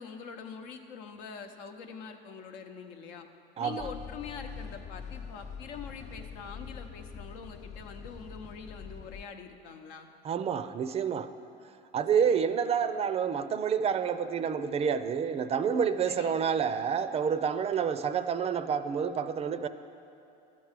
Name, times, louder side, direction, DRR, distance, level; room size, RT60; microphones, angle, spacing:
voice 1, 0.0-3.3 3.6-10.1 12.1-12.4 16.1-16.4, left 6 dB, 85° left, 5 dB, 0.9 m, -44 dB
voice 2, 3.6-3.9 10.2-11.3 11.9-19.7, right 7 dB, 30° right, 12 dB, 0.4 m, -28 dB
sound 1, 3.8-9.2, left 6 dB, 35° left, 0.4 m, -44 dB
13.0 x 4.7 x 8.1 m, 2.7 s
cardioid pair, 125°, 21 cm